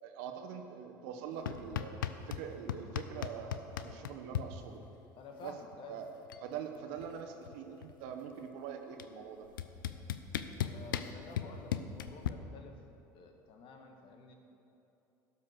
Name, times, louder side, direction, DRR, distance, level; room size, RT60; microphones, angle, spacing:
voice 1, 0.0-1.9 2.3-4.8 5.4-5.5 5.9-6.1 6.4-9.5, right 7 dB, 70° right, 4 dB, 1.1 m, -43 dB
sound 1, 1.5-2.4 2.7-4.5 5.7-5.8 6.1-6.5 6.8-8.1 9.0-9.1 9.6-12.3, left 11 dB, 90° left, 0.4 m, -36 dB
voice 2, 5.2-6.0 10.6-12.8 13.1-14.3, left 4 dB, 55° left, 4 dB, 1.4 m, -51 dB
12.0 x 6.1 x 6.3 m, 2.9 s
hypercardioid pair, 75°, 11 cm